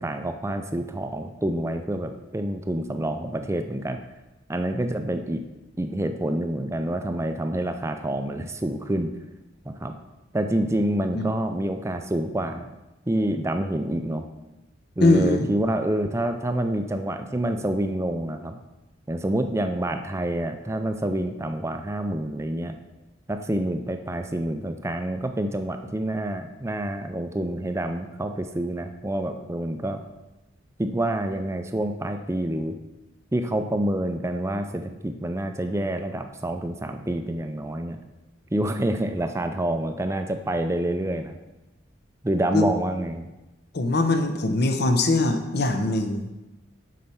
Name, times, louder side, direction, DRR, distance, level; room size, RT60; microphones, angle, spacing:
voice 1, 0.0-4.0 4.5-5.4 5.8-9.1 9.7-9.9 10.3-12.7 13.1-14.2 15.0-18.6 19.1-22.8 23.3-30.0 30.8-32.8 33.3-38.0 38.5-41.4 42.2-43.3, right 1 dB, 15° right, 7 dB, 0.4 m, -27 dB
voice 2, 15.0-15.5 42.5-42.6 43.7-46.4, left 2 dB, 55° left, 6 dB, 0.7 m, -22 dB
7.7 x 4.2 x 5.6 m, 1.0 s
head